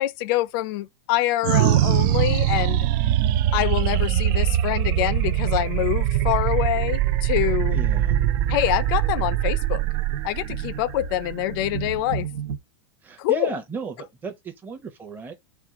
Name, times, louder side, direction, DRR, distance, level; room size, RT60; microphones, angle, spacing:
voice 1, 0.0-2.9 3.5-7.8 8.5-9.8 10.2-12.3 13.2-13.5, left 14 dB, 55° left, 0.5 m, -25 dB
sound 1, 1.4-12.1, right 12 dB, 50° right, 0.4 m, -22 dB
sound 2, 7.3-12.6, right 4 dB, 85° right, 1.0 m, -34 dB
voice 2, 7.7-8.2 13.0-15.3, right 5 dB, 15° right, 0.8 m, -35 dB
4.4 x 2.3 x 4.8 m
supercardioid pair, 140°, 14 cm